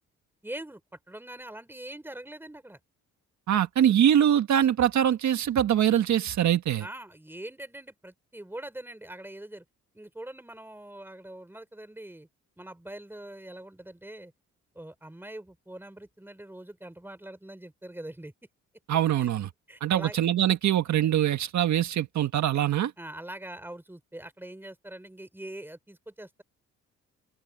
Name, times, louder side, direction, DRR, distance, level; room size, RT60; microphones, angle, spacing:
voice 1, 0.4-0.8 1.1-2.8 6.8-9.6 9.9-12.3 12.6-14.3 14.7-18.3 19.2-19.3 19.7-20.2 23.0-26.4, right 1 dB, 5° right, 4.0 m, -43 dB
voice 2, 3.5-6.8 18.9-19.5 19.8-22.9, right 10 dB, 65° right, 1.6 m, -23 dB
open air
cardioid pair, 90°, 30 cm